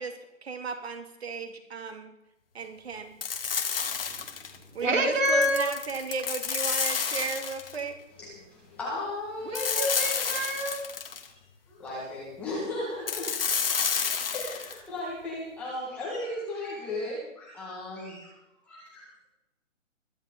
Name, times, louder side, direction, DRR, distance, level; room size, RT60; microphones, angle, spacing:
voice 1, 0.0-2.1 2.6-3.1 4.7-8.0, right 4 dB, 50° right, 6 dB, 2.5 m, -34 dB
sound 1, 3.2-4.6 5.3-7.8 9.5-11.3 13.1-14.8, left 6 dB, 45° left, 1.5 m, -30 dB
voice 2, 4.1-5.7 9.4-10.9, equal, 70° right, 1 dB, 3.9 m, -28 dB
voice 3, 8.2-9.8 11.7-13.3 14.3-18.4 18.6-19.3, left 2 dB, 5° left, -6 dB, 1.5 m, -36 dB
22.0 x 10.5 x 3.8 m, 0.86 s
hypercardioid pair, 175°, 39 cm